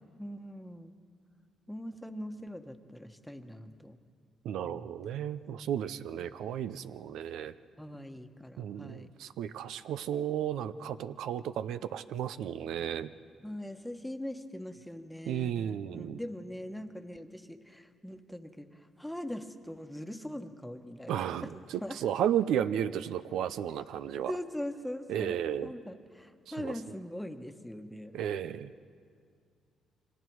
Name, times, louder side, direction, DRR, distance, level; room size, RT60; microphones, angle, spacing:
voice 1, 0.2-0.9 1.7-4.0 4.6-5.3 7.8-9.1 13.4-22.0 24.3-28.2, left 1 dB, 5° left, 6 dB, 1.2 m, -42 dB
voice 2, 4.4-7.5 8.6-13.1 15.3-16.2 21.1-24.3 25.1-25.7 26.6-26.7 28.1-28.7, right 10 dB, 85° right, 12 dB, 0.6 m, -33 dB
29.5 x 24.5 x 4.7 m, 2.1 s
cardioid pair, 90°, 0 cm